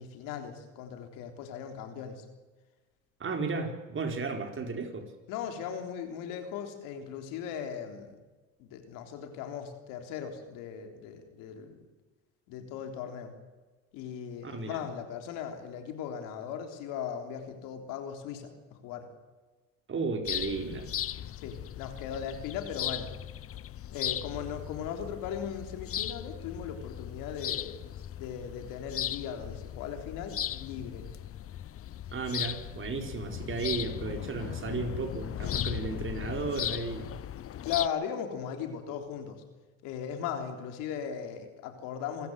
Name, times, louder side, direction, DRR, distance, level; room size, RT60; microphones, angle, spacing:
voice 1, 0.0-2.2 5.3-8.2 8.6-11.8 12.5-13.3 13.9-19.1 21.4-23.1 23.9-27.8 28.2-31.1 37.6-39.4 39.8-42.3, left 8 dB, 85° left, 5 dB, 3.6 m, -38 dB
voice 2, 3.2-5.1 14.4-14.8 19.9-20.9 32.1-37.2, right 4 dB, 40° right, 4 dB, 4.6 m, -34 dB
sound 1, 20.2-37.9, left 11 dB, 45° left, 0.8 m, -37 dB
27.5 x 14.0 x 8.0 m, 1.3 s
supercardioid pair, 90°, 33 cm